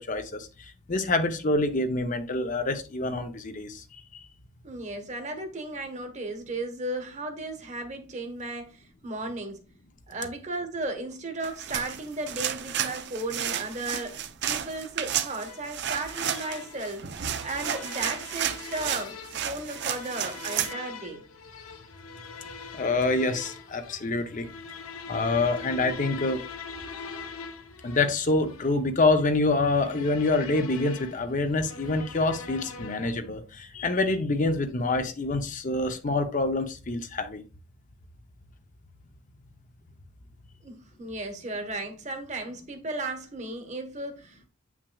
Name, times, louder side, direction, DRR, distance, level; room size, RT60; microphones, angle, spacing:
voice 1, 0.0-3.8 4.1-4.2 22.7-24.5 25.1-26.4 27.8-37.4, left 2 dB, 40° left, 0.6 m, -26 dB
voice 2, 4.6-9.6 10.1-17.0 17.4-19.2 19.4-21.2 40.6-44.5, right 2 dB, 35° right, 1.2 m, -35 dB
sound 1, 11.4-20.7, right 9 dB, 55° right, 0.6 m, -32 dB
sound 2, 15.3-33.3, left 5 dB, 90° left, 1.0 m, -43 dB
8.1 x 5.9 x 2.3 m
head